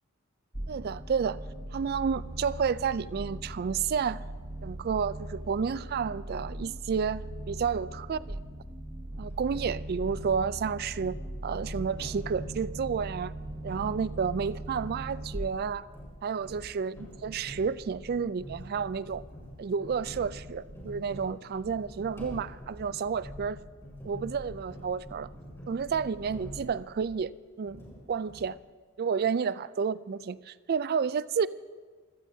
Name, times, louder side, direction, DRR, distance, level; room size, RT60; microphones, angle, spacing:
sound 1, 0.5-15.4, right 1 dB, 20° right, 0.8 m, -40 dB
voice 1, 0.7-1.4 1.7-4.2 4.6-7.2 7.5-8.4 9.2-11.2 11.4-13.3 13.6-15.9 16.2-19.2 19.6-23.6 24.0-25.3 25.7-27.3 27.6-27.8 28.1-28.6 29.0-31.5, right 6 dB, 45° right, 17 dB, 0.3 m, -31 dB
sound 2, 9.1-27.3 27.6-28.6, equal, 10° left, 4.7 m, -46 dB
25.0 x 16.5 x 2.7 m, 1.5 s
head